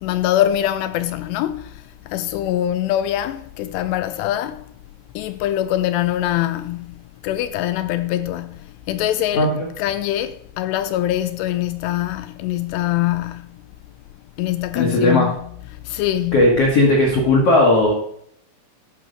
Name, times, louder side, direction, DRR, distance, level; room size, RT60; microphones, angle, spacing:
voice 1, 0.0-4.7 5.2-9.5 9.8-13.6 14.4-16.5, left 13 dB, 80° left, 2.6 m, -23 dB
voice 2, 9.3-9.7 14.7-15.3 16.3-17.9, left 2 dB, 55° left, 1.7 m, -16 dB
11.5 x 5.9 x 5.1 m
omnidirectional pair, 5.1 m